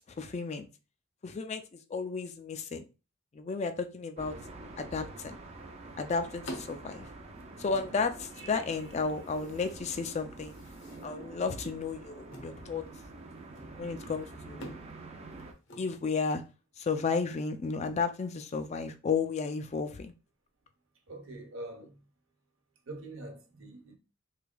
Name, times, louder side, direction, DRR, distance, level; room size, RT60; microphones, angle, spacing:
voice 1, 0.2-0.7 1.2-1.6 1.9-2.8 3.3-4.3 4.8-5.4 6.0-7.1 7.6-10.6 11.0-12.9 13.8-14.7 15.8-16.4 16.8-20.1, left 4 dB, 35° left, 0.3 m, -33 dB
sound 1, 4.2-15.5, right 2 dB, 30° right, 0.5 m, -47 dB
sound 2, 6.3-16.5, equal, 65° left, 0.9 m, -51 dB
voice 2, 21.1-22.0 22.9-24.0, right 2 dB, 75° right, 0.8 m, -44 dB
3.4 x 3.3 x 2.3 m
head